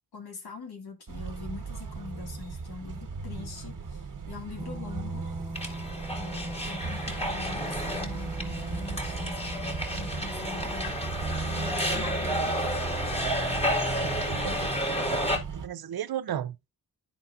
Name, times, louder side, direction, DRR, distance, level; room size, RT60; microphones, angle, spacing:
voice 1, 0.1-5.2 6.1-11.0 11.5-12.9 14.4-14.6, left 5 dB, 85° left, 2.1 m, -42 dB
sound 1, 1.1-15.7, right 4 dB, 60° right, 1.3 m, -37 dB
sound 2, 4.6-10.8, right 1 dB, 5° right, 1.3 m, -41 dB
sound 3, 5.5-15.4, equal, 15° left, 1.9 m, -31 dB
voice 2, 13.7-16.6, right 10 dB, 75° right, 0.6 m, -36 dB
12.5 x 4.2 x 2.5 m
cardioid pair, 80°, 37 cm